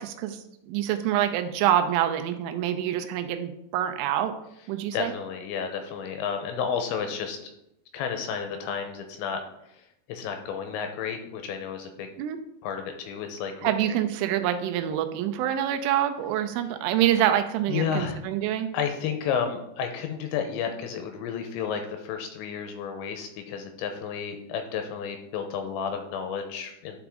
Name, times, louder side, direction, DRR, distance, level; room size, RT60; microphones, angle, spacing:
voice 1, 0.0-4.4 4.7-5.1 12.2-12.4 13.6-18.7, right 11 dB, 85° right, 7 dB, 3.2 m, -26 dB
voice 2, 4.9-7.4 7.9-12.1 12.6-13.7 17.7-18.2 18.7-27.0, left 7 dB, 80° left, 5 dB, 2.8 m, -32 dB
11.5 x 5.0 x 3.6 m, 0.80 s
omnidirectional pair, 5.7 m